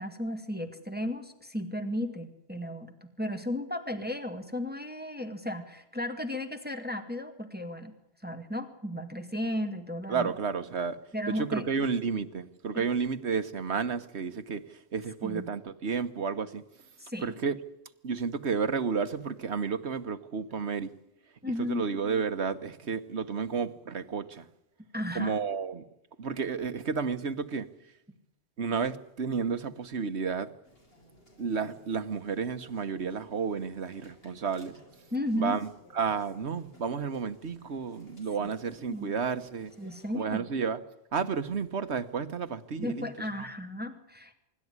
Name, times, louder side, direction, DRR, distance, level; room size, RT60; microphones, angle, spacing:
voice 1, 0.0-7.9 8.2-10.3 11.1-11.6 12.7-12.9 15.2-15.5 17.0-17.3 21.4-21.8 24.9-25.4 35.1-35.6 38.4-38.5 38.9-39.1 39.8-40.4 42.8-44.4, left 1 dB, 10° right, 2.2 m, -34 dB
voice 2, 10.1-11.0 11.3-16.6 17.2-17.6 18.0-20.9 21.6-24.5 25.1-25.8 26.2-27.7 28.6-30.5 31.4-34.8 35.4-39.7 40.1-40.8 41.1-43.1 43.4-43.5, right 5 dB, 80° right, 1.5 m, -31 dB
sound 1, 30.6-40.2, equal, 60° left, 6.4 m, -59 dB
25.5 x 12.0 x 9.7 m
omnidirectional pair, 1.1 m